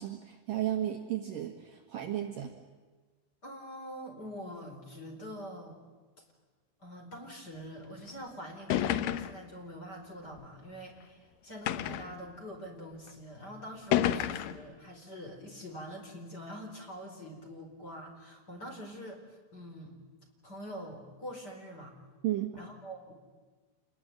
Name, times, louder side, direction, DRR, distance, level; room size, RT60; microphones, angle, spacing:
voice 1, 0.0-2.5 22.2-22.5, right 12 dB, 60° right, 3 dB, 2.7 m, -34 dB
voice 2, 3.4-5.8 6.8-19.2 19.5-19.9 20.4-21.9 22.6-23.1, equal, 20° left, 2 dB, 4.7 m, -45 dB
sound 1, 8.1-8.2 8.7-9.5 10.4-10.5 11.7-12.2 13.1-13.2 13.9-14.7, left 11 dB, 85° left, 1.9 m, -30 dB
28.0 x 21.5 x 9.1 m, 1.3 s
omnidirectional pair, 5.3 m